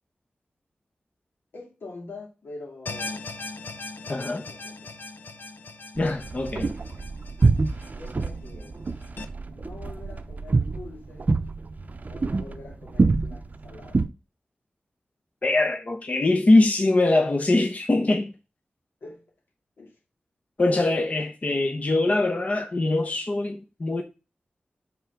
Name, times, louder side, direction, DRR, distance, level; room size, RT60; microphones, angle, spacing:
voice 1, 1.5-3.3 4.0-4.9 8.0-8.8 9.5-11.4 12.1-14.1 19.0-19.2 19.8-20.0, left 3 dB, 85° left, 2.4 m, -44 dB
sound 1, 2.9-9.2, left 3 dB, 65° left, 0.7 m, -39 dB
voice 2, 4.1-4.4 6.0-6.7 15.4-18.3 20.6-24.0, left 2 dB, 40° left, 0.9 m, -22 dB
sound 2, 6.0-14.1, right 3 dB, 45° right, 0.6 m, -26 dB
5.5 x 3.9 x 5.8 m
wide cardioid pair, 75°, 4 cm